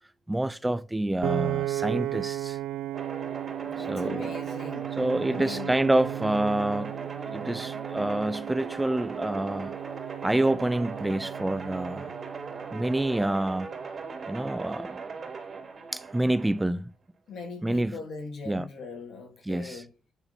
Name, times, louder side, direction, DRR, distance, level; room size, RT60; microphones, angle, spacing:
voice 1, 0.3-2.6 3.8-4.3 4.9-6.9 7.3-9.8 10.2-12.1 12.7-13.7 14.3-15.0 15.9-16.9 17.6-18.0 18.5-18.7 19.5-19.8, right 1 dB, 10° right, 0.4 m, -27 dB
Piano, 1.2-13.5, right 14 dB, 90° right, 0.4 m, -35 dB
sound 1, 2.9-16.7, right 4 dB, 40° right, 3.0 m, -39 dB
voice 2, 3.6-4.9 5.3-5.7 17.3-19.9, left 4 dB, 65° left, 3.0 m, -40 dB
9.1 x 4.1 x 5.8 m
cardioid pair, 90°, 0 cm